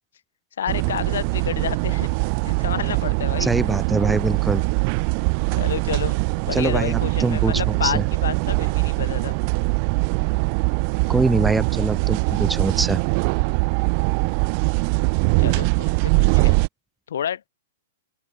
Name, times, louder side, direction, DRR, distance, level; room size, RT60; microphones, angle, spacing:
voice 1, 0.6-2.1 2.4-3.5 5.5-6.2 6.4-9.3 15.4-16.6 17.1-17.4, left 9 dB, 75° left, 2.9 m, -29 dB
sound 1, 0.7-16.7, right 37 dB, 35° right, 1.3 m, -22 dB
voice 2, 3.4-4.6 6.5-8.0 11.1-13.0, right 3 dB, 5° right, 3.0 m, -23 dB
open air
hypercardioid pair, 160°, 0 cm